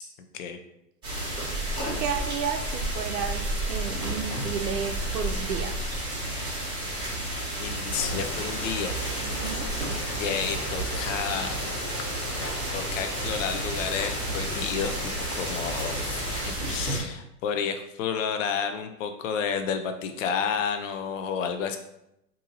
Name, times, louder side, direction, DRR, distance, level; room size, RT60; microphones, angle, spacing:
sound 1, 1.0-17.0, right 1 dB, 10° right, 1.0 m, -31 dB
voice 1, 2.0-5.7 9.2-9.7, right 7 dB, 80° right, 7 dB, 0.6 m, -32 dB
voice 2, 7.6-9.1 10.2-11.6 12.7-21.8, left 7 dB, 55° left, 7 dB, 0.5 m, -31 dB
Boiling, 7.9-16.4, left 2 dB, 35° left, 1.2 m, -37 dB
2.8 x 2.5 x 3.9 m, 0.83 s
hypercardioid pair, 150°, 48 cm